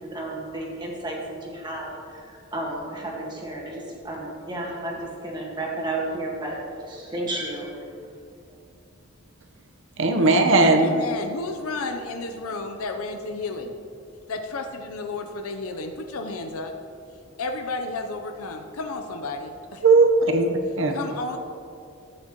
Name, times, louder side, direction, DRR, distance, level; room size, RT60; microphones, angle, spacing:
voice 1, 0.0-6.6 6.9-7.8 8.5-8.6, right 1 dB, 20° right, -2 dB, 1.6 m, -32 dB
voice 2, 10.0-10.9 19.8-20.9, right 3 dB, 60° right, 4 dB, 0.9 m, -18 dB
voice 3, 10.8-13.7 14.3-16.7 17.4-19.8 20.9-21.4, left 3 dB, 90° left, 5 dB, 0.7 m, -32 dB
13.5 x 8.4 x 3.0 m, 2.5 s
head